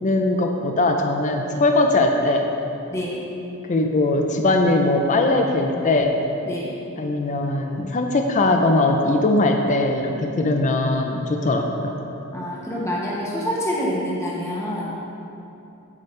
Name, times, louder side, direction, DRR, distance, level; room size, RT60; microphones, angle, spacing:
voice 1, 0.0-2.5 3.7-6.1 7.0-12.0, left 2 dB, 35° left, 3 dB, 0.5 m, -20 dB
voice 2, 2.9-3.3 6.4-6.8 12.3-14.9, equal, 15° left, -6 dB, 1.0 m, -27 dB
8.5 x 8.2 x 3.2 m, 2.8 s
head